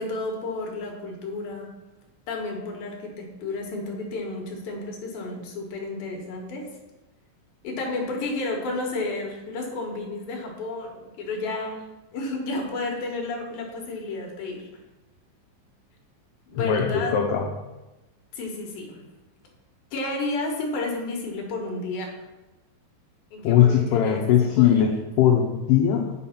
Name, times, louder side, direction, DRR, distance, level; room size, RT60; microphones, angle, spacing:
voice 1, 0.0-1.7 2.3-6.6 7.6-11.8 12.1-14.6 16.5-17.1 18.3-19.0 19.9-22.1 23.3-24.8, left 2 dB, 65° left, 0 dB, 2.7 m, -31 dB
voice 2, 16.5-17.5 23.4-26.1, left 9 dB, 85° left, 2 dB, 2.3 m, -20 dB
9.0 x 5.7 x 5.8 m, 1.1 s
omnidirectional pair, 5.6 m